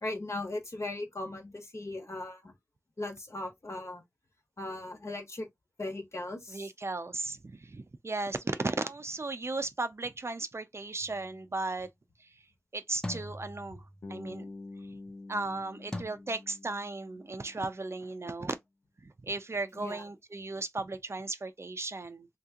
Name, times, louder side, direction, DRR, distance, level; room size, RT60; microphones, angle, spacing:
voice 1, 0.0-2.5 3.0-4.0 4.6-5.5 5.8-6.7 19.7-20.0, left 2 dB, 55° left, 1.2 m, -38 dB
voice 2, 6.5-11.9 12.2-12.3 12.7-13.8 14.1-14.4 15.3-18.5 19.0-22.3, right 3 dB, 50° right, 0.5 m, -36 dB
sound 1, 11.0-11.4 13.0-14.3 15.9-16.0, left 1 dB, 10° left, 0.7 m, -41 dB
Bass guitar, 14.0-18.0, left 2 dB, 85° left, 0.8 m, -47 dB
2.9 x 2.9 x 3.5 m
wide cardioid pair, 55°, 6 cm